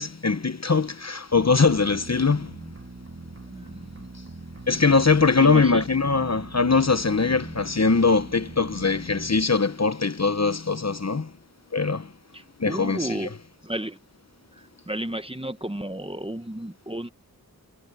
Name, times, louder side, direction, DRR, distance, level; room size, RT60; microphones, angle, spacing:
voice 1, 0.0-2.6 4.7-11.3 11.7-12.1 12.6-13.3, left 4 dB, 45° left, 1.0 m, -22 dB
sound 1, 1.3-9.4, right 3 dB, 40° right, 2.8 m, -42 dB
voice 2, 3.5-4.1 5.4-5.8 12.3-13.3 13.6-14.0 14.9-17.1, right 1 dB, 15° right, 1.2 m, -33 dB
wide cardioid pair, 60°, 36 cm